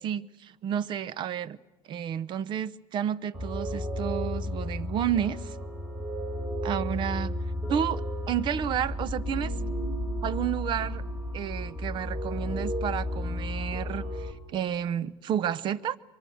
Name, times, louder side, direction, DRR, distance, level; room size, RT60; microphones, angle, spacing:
voice 1, 0.0-1.6 1.9-5.6 6.6-7.3 7.7-9.5 10.2-11.0 11.3-16.0, right 9 dB, 40° right, 0.7 m, -31 dB
sound 1, 3.3-14.3, left 1 dB, 15° right, 3.8 m, -33 dB
23.5 x 23.0 x 7.9 m
supercardioid pair, 130°, 12 cm